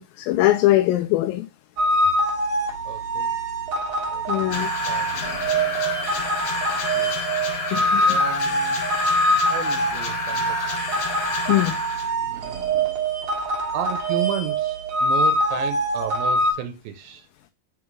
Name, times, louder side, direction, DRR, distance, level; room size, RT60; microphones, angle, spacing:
voice 1, 0.0-1.5 4.3-4.7 7.7-8.2 11.5-11.8, left 15 dB, 85° left, 2.3 m, -21 dB
sound 1, 1.8-16.5, right 1 dB, 45° right, 2.0 m, -24 dB
voice 2, 2.9-3.3 4.1-4.3 4.6-5.1 6.4-7.2 7.9-8.8 9.5-10.6 12.1-12.9 13.7-17.3, right 10 dB, 85° right, 2.4 m, -33 dB
sound 2, 4.5-12.1, left 4 dB, 60° left, 1.9 m, -29 dB
5.9 x 3.9 x 4.6 m
omnidirectional pair, 4.1 m